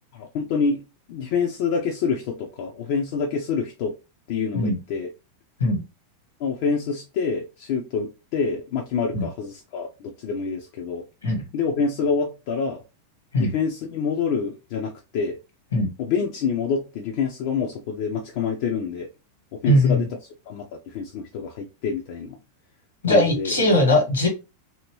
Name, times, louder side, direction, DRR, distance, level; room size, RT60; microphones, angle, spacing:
voice 1, 0.1-0.8 1.1-3.9 4.3-5.1 6.4-11.1 11.5-12.8 13.4-15.4 16.0-19.1 19.5-20.1 20.5-22.4 23.1-23.5, left 5 dB, 50° left, 1 dB, 0.5 m, -27 dB
voice 2, 19.7-20.0 23.0-24.3, left 1 dB, 75° left, 3 dB, 1.4 m, -19 dB
2.8 x 2.8 x 2.9 m, 0.28 s
figure-of-eight pair, 90°, 0 cm